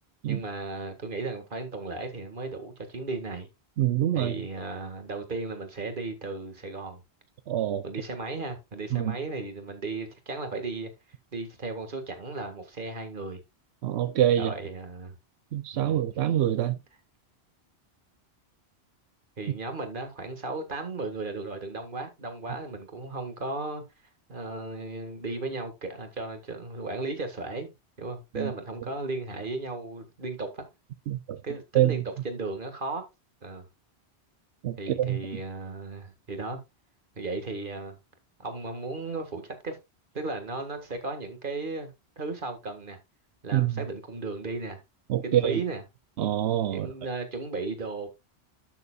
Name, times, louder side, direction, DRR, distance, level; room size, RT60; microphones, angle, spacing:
voice 1, 0.3-3.5 4.1-7.0 7.8-10.9 11.3-13.4 14.4-15.1 15.7-16.0 19.4-23.8 24.3-27.7 28.0-30.7 31.4-33.0 33.4-33.6 34.8-36.6 37.2-38.0 38.4-39.8 40.1-43.0 43.4-44.8 45.2-45.8 46.7-48.1, right 3 dB, 55° right, 2.0 m, -35 dB
voice 2, 3.8-4.3 7.5-7.8 8.9-9.2 13.8-14.5 15.5-16.8 28.4-28.5 31.1-31.4 31.7-32.0 34.6-35.2 43.5-43.8 45.1-45.6 46.2-46.9, right 12 dB, 90° right, 0.9 m, -25 dB
12.0 x 6.8 x 2.3 m
omnidirectional pair, 1.1 m